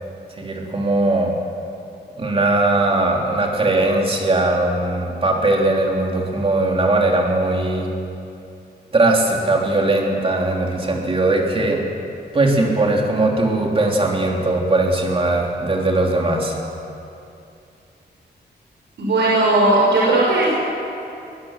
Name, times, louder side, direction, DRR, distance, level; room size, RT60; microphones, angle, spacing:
voice 1, 0.4-1.3 2.2-7.9 8.9-11.8 12.3-16.6, right 2 dB, 30° right, -1 dB, 3.4 m, -19 dB
voice 2, 19.0-20.5, right 2 dB, 90° right, -6 dB, 6.0 m, -16 dB
21.5 x 21.0 x 7.5 m, 2.6 s
wide cardioid pair, 175°, 18 cm